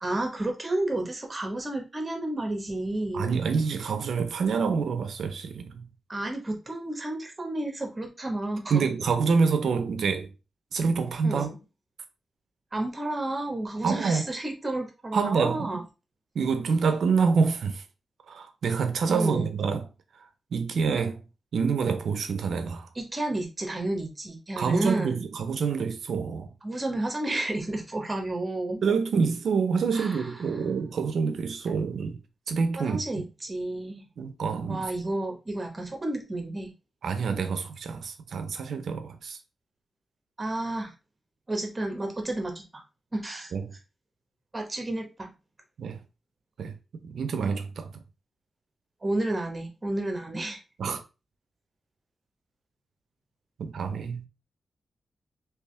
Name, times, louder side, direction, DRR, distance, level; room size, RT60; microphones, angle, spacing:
voice 1, 0.0-3.3 6.1-8.9 11.2-11.6 12.7-15.8 19.1-19.5 22.9-25.2 26.6-28.8 29.9-30.2 32.8-34.0 34.7-36.7 40.4-40.9 41.5-42.8 43.1-43.5 44.5-45.3 49.0-50.6, right 1 dB, 20° right, 1.0 m, -31 dB
voice 2, 3.1-5.9 8.7-10.3 10.7-11.5 13.8-14.3 15.1-15.8 16.3-17.8 18.3-19.9 20.5-21.2 21.5-22.9 24.6-26.5 28.8-32.2 32.5-33.2 34.2-34.9 37.0-39.4 43.5-43.8 45.8-46.0 46.6-46.7 47.0-47.9 50.8-51.0 53.6-54.3, right 5 dB, 75° right, 0.6 m, -27 dB
3.5 x 3.0 x 3.2 m
wide cardioid pair, 125°, 0 cm